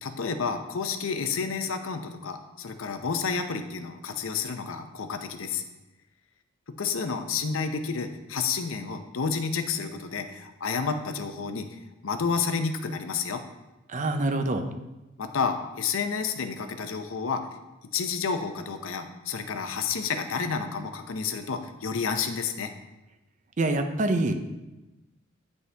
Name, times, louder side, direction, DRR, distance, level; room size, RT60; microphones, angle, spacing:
voice 1, 0.0-5.6 6.7-11.7 12.0-13.4 15.2-17.4 17.9-22.7, left 5 dB, 70° left, 8 dB, 0.6 m, -30 dB
voice 2, 13.9-14.7 23.6-24.3, right 2 dB, 35° right, 6 dB, 0.6 m, -25 dB
9.2 x 5.3 x 3.3 m, 1.0 s
head